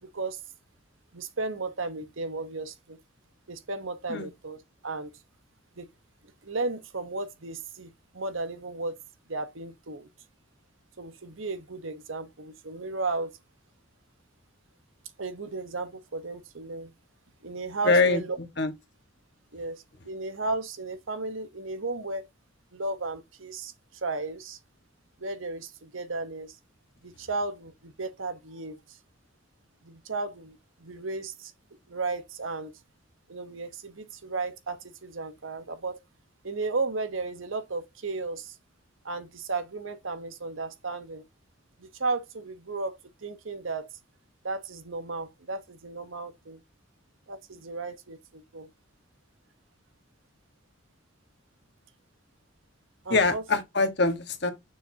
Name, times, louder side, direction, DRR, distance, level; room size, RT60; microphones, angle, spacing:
voice 1, 0.0-0.4 1.1-3.0 3.5-4.6 4.8-5.1 5.8-5.9 6.4-9.0 9.3-10.1 11.0-13.3 15.2-16.9 17.4-18.4 19.5-22.3 22.7-23.7 24.0-24.6 25.2-26.6 27.0-29.0 29.8-31.5 31.9-32.7 33.3-36.0 36.4-38.6 39.0-41.2 41.8-43.9 44.4-46.6 47.3-48.7 53.0-53.4, right 3 dB, 80° right, 1.2 m, -34 dB
voice 2, 17.8-18.2 18.6-18.7 53.1-54.5, left 3 dB, 55° left, 1.5 m, -23 dB
6.8 x 6.3 x 2.8 m
head